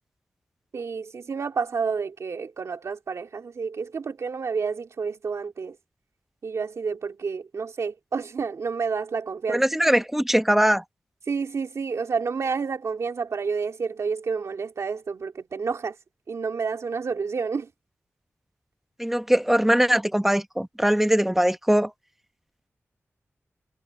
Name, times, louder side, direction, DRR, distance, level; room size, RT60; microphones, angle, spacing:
voice 1, 0.7-5.8 6.4-9.6 11.3-15.9 16.3-17.7, right 5 dB, 85° right, 2.7 m, -29 dB
voice 2, 9.5-10.8 19.0-21.9, equal, 5° right, 1.2 m, -21 dB
wide cardioid pair, 100°, 5 cm